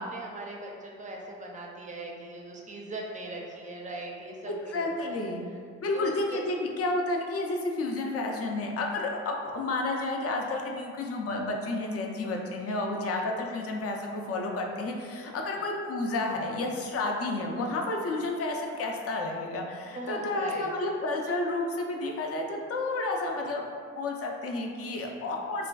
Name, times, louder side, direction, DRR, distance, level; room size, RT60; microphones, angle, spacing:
voice 1, 0.0-5.3 5.9-6.4 12.7-12.8 13.1-13.2 19.9-20.7 25.2-25.3, right 2 dB, 25° right, -1 dB, 0.4 m, -40 dB
voice 2, 4.4-5.4 5.8-23.6 23.9-25.7, left 2 dB, 50° left, 1 dB, 0.4 m, -31 dB
2.4 x 2.3 x 2.2 m, 2.1 s
cardioid pair, 65°, 30 cm